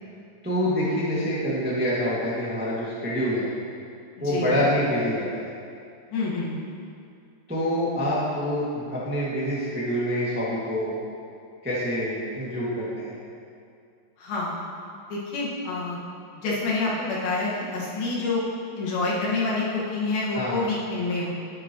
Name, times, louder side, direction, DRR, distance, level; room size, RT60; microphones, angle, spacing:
voice 1, 0.4-3.5 4.2-5.5 7.5-10.9 11.6-13.1 20.3-20.6, equal, 5° right, -8 dB, 0.7 m, -26 dB
voice 2, 4.2-4.7 6.1-6.6 14.2-14.6 15.1-16.0 16.3-18.4 18.8-21.3, left 3 dB, 85° left, -6 dB, 3.5 m, -27 dB
10.0 x 10.0 x 3.1 m, 2.4 s
omnidirectional pair, 4.1 m